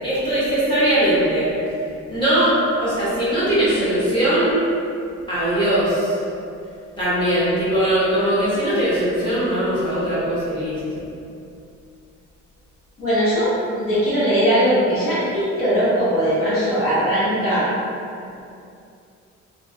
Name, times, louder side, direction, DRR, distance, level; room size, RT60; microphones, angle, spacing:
voice 1, 0.0-1.5 2.1-2.5 2.8-4.6 5.3-6.2 7.0-11.0, right 1 dB, 15° left, -12 dB, 1.2 m, -20 dB
voice 2, 13.0-17.7, equal, 45° left, -10 dB, 1.1 m, -20 dB
3.2 x 2.0 x 2.2 m, 2.5 s
cardioid pair, 90°, 30 cm